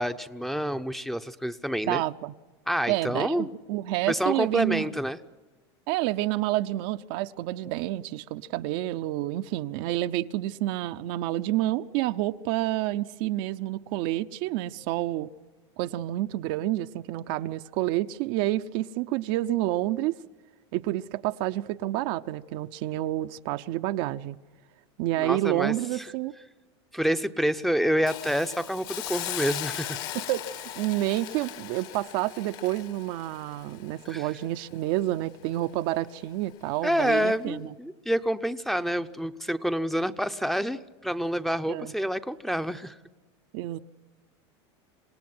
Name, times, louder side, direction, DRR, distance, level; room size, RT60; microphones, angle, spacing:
voice 1, 0.0-2.0 2.7-3.5 4.1-5.2 25.2-26.0 26.9-30.0 34.1-34.3 36.8-43.0, equal, ahead, 0.7 m, -28 dB
voice 2, 1.8-2.3 2.9-4.9 5.9-15.3 15.8-20.1 20.7-24.4 25.0-26.3 30.1-37.7 41.7-41.9 43.5-43.8, right 15 dB, 60° right, 0.7 m, -29 dB
Hiss, 28.1-35.1 35.5-35.7, left 12 dB, 65° left, 2.2 m, -38 dB
27.0 x 18.0 x 9.6 m
supercardioid pair, 135°, 14 cm